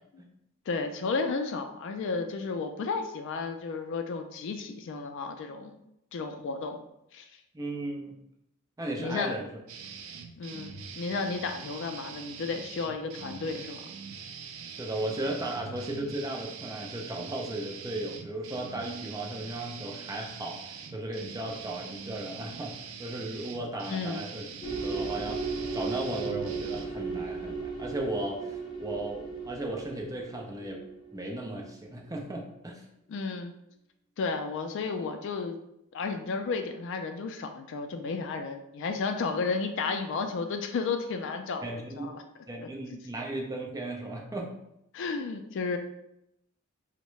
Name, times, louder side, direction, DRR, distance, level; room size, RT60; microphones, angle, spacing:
voice 1, 0.7-5.8 6.1-6.9 7.1-7.3 9.0-9.4 10.4-13.8 23.9-24.3 33.1-33.5 34.2-35.6 35.9-41.7 42.0-42.2 42.6-43.0 44.9-45.8, left 4 dB, 60° left, 6 dB, 0.3 m, -33 dB
voice 2, 7.5-8.2 8.8-9.5 14.7-20.6 20.9-24.5 24.8-30.8 31.1-32.8 41.6-42.1 42.5-44.6, right 1 dB, 15° right, 0 dB, 0.5 m, -36 dB
sound 1, 9.7-26.8, right 6 dB, 75° right, 0.4 m, -43 dB
sound 2, 24.6-31.7, right 4 dB, 25° left, 0.7 m, -36 dB
3.5 x 2.1 x 3.0 m, 0.82 s
head